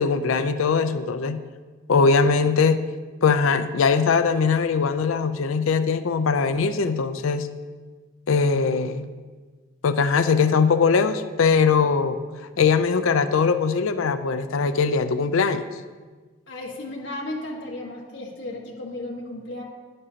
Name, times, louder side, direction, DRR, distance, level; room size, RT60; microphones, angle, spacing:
voice 1, 0.0-1.4 1.9-2.8 3.2-7.5 8.3-9.1 9.8-12.2 12.6-15.6, left 5 dB, 85° left, 10 dB, 0.5 m, -21 dB
voice 2, 16.5-19.6, left 1 dB, 65° left, -2 dB, 1.6 m, -34 dB
10.5 x 9.6 x 2.9 m, 1.4 s
head